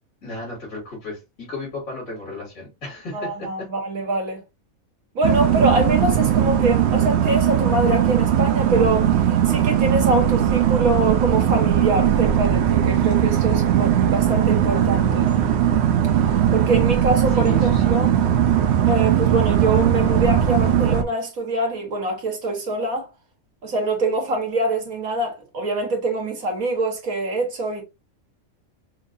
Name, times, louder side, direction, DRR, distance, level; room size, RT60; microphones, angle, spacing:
voice 1, 0.2-3.7 17.3-18.1, left 2 dB, 70° left, 3.3 m, -34 dB
voice 2, 3.1-4.4 5.2-15.3 16.2-18.1 18.8-23.1 23.6-27.8, right 2 dB, 75° right, 1.9 m, -24 dB
sound 1, 5.2-21.0, right 10 dB, 60° right, 0.8 m, -19 dB
6.0 x 2.6 x 2.6 m
omnidirectional pair, 1.5 m